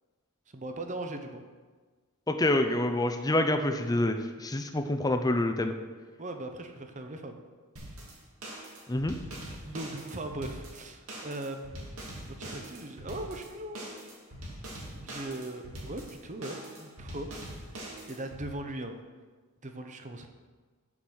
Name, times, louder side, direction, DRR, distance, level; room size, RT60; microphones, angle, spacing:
voice 1, 0.5-1.4 6.2-7.4 9.4-11.9 12.2-13.9 14.9-17.3 18.0-19.0 19.6-20.3, right 1 dB, 35° right, 6 dB, 0.8 m, -39 dB
voice 2, 2.3-5.7 8.9-9.1, left 1 dB, 15° left, 6 dB, 0.6 m, -27 dB
sound 1, 7.8-18.4, right 1 dB, 70° right, 2.4 m, -43 dB
7.3 x 7.3 x 6.4 m, 1.4 s
head